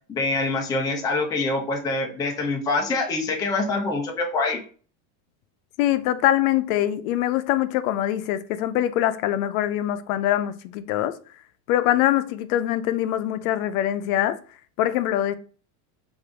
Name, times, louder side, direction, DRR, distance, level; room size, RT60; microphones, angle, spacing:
voice 1, 0.1-4.6, left 3 dB, 10° left, 0.4 m, -25 dB
voice 2, 5.8-11.2 11.7-14.4 14.8-15.3, left 12 dB, 85° left, 0.6 m, -23 dB
5.0 x 2.7 x 3.4 m
cardioid pair, 160°, 41 cm